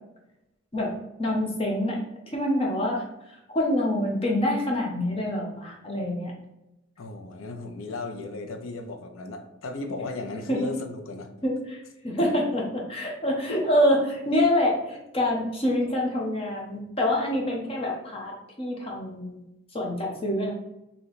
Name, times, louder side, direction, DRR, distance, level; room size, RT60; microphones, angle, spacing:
voice 1, 1.2-2.0 2.3-6.3 10.5-10.7 11.4-19.4 19.7-20.5, left 1 dB, 30° left, -1 dB, 0.7 m, -26 dB
voice 2, 7.0-11.3 12.1-12.2 13.5-13.6, left 3 dB, 90° left, 6 dB, 0.5 m, -36 dB
3.2 x 2.9 x 4.0 m, 0.90 s
head